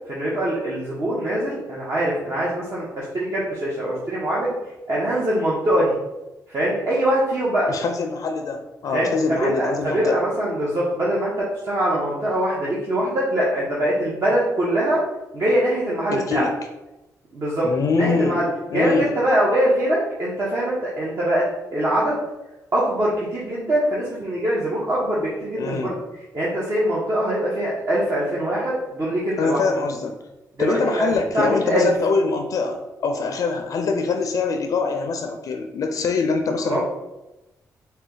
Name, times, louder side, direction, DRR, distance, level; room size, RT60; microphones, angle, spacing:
voice 1, 0.1-4.5 4.9-5.9 6.5-7.7 8.9-15.0 15.3-16.5 17.3-18.5 18.7-21.5 21.7-22.2 22.7-29.6 30.6-31.1 31.3-31.9 36.6-36.8, right 1 dB, 45° right, -6 dB, 1.0 m, -23 dB
voice 2, 7.7-10.2 16.1-16.5 17.6-18.4 18.7-19.1 25.6-25.9 29.4-30.1 30.6-36.8, left 4 dB, 65° left, 5 dB, 0.4 m, -24 dB
4.1 x 2.2 x 3.8 m, 0.98 s
cardioid pair, 85°, 6 cm